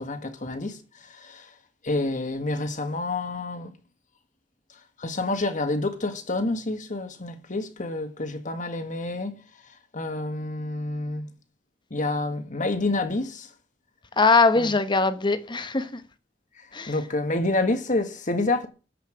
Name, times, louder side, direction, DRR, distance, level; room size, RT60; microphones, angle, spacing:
voice 1, 0.0-1.5 1.8-3.7 5.0-9.3 9.9-11.3 11.9-13.5 14.6-14.7 16.9-18.7, left 2 dB, 45° left, 1.6 m, -28 dB
voice 2, 14.2-16.0 16.7-16.9, left 3 dB, 25° left, 1.0 m, -21 dB
13.5 x 5.7 x 7.9 m
head